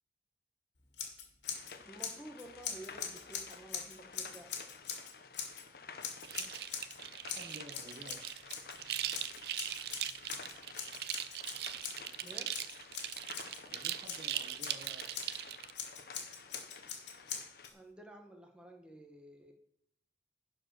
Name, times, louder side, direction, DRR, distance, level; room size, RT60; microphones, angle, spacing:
Scissors, 0.9-1.7 2.0-5.6 6.0-7.0 7.3-8.8 9.1-13.6 14.0-15.4 15.7-17.7, left 7 dB, 85° left, 1.9 m, -43 dB
sound 1, 1.4-17.7, left 5 dB, 55° left, 0.8 m, -52 dB
voice 1, 1.8-4.6 12.2-12.5 17.7-19.5, right 1 dB, 5° right, 3 dB, 1.1 m, -52 dB
sound 2, 6.2-15.7, right 11 dB, 60° right, 0.5 m, -40 dB
voice 2, 7.3-8.2 13.7-15.1, right 1 dB, 35° right, 4 dB, 0.9 m, -52 dB
11.0 x 4.7 x 6.1 m, 0.71 s
head